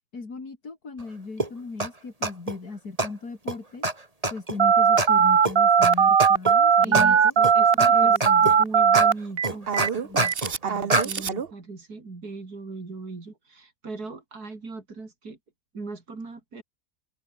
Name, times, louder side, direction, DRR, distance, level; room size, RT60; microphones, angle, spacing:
voice 1, 0.1-3.8 4.3-7.3 7.9-8.5 9.7-10.3, left 4 dB, 80° left, 4.0 m, -37 dB
sound 1, 1.4-1.5 1.8-1.9 2.2-2.5 3.0-3.1 3.5-3.6 3.8-3.9 4.2-4.6 5.0-5.1 5.4-5.5 5.8-5.9 6.2-6.5 6.9-7.1 7.4-7.9 8.2-8.6 8.9-9.1 9.4-10.5 10.9-11.0, right 2 dB, 25° right, 2.7 m, -24 dB
Telephone, 4.6-11.5, right 7 dB, 45° right, 1.1 m, -19 dB
voice 2, 6.8-9.7 10.6-15.4 15.7-16.6, right 3 dB, 80° right, 4.2 m, -38 dB
omnidirectional pair, 1.6 m